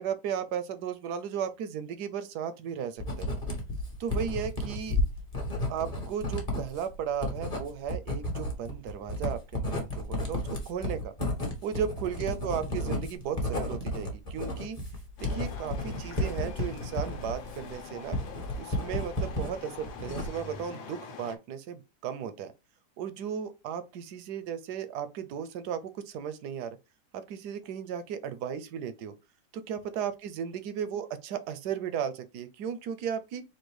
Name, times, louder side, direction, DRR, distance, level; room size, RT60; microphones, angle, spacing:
voice 1, 0.0-3.3 4.0-5.0 5.7-11.1 11.6-14.8 15.2-18.2 18.6-22.5 23.0-26.8 27.1-29.1 29.5-33.4, right 8 dB, 70° right, 1.1 m, -35 dB
Writing, 3.0-19.5 19.9-20.6, left 1 dB, 25° left, 1.1 m, -32 dB
sound 1, 15.2-21.4, left 6 dB, 80° left, 1.5 m, -44 dB
4.4 x 2.4 x 4.6 m
omnidirectional pair, 2.1 m